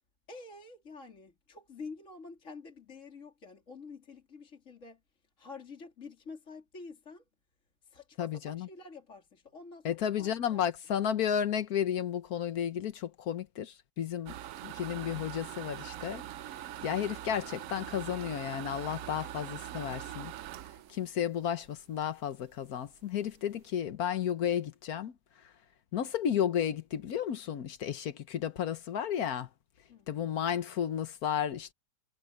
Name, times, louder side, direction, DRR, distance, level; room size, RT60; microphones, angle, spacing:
voice 1, 0.3-5.0 5.4-7.2 7.8-10.7 20.8-21.0 29.9-30.1, left 4 dB, 40° left, 3.1 m, -48 dB
voice 2, 8.2-8.7 9.8-14.3 14.6-16.2 16.8-20.3 20.9-25.1 25.9-29.5 30.1-31.7, left 9 dB, 60° left, 1.3 m, -33 dB
sound 1, 14.3-22.0 22.4-22.5 22.9-23.0 23.2-23.6, right 12 dB, 80° right, 0.7 m, -43 dB
omnidirectional pair, 2.0 m